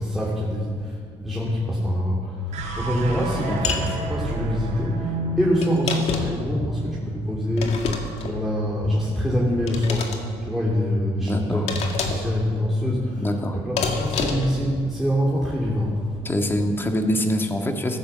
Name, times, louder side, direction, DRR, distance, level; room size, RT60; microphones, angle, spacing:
voice 1, 0.0-13.3 13.5-16.3, equal, ahead, -6 dB, 2.8 m, -25 dB
sound 1, 2.5-8.9, equal, 80° right, 3.4 m, -30 dB
sound 2, 3.6-3.9 5.6-6.5 7.6-8.3 9.7-10.2 11.7-12.3 13.8-14.6, left 5 dB, 65° left, 2.2 m, -28 dB
voice 2, 11.2-11.7 13.2-13.6 16.2-18.0, equal, 20° left, 4 dB, 1.9 m, -24 dB
15.0 x 13.5 x 7.0 m, 2.1 s
cardioid pair, 105°, 12 cm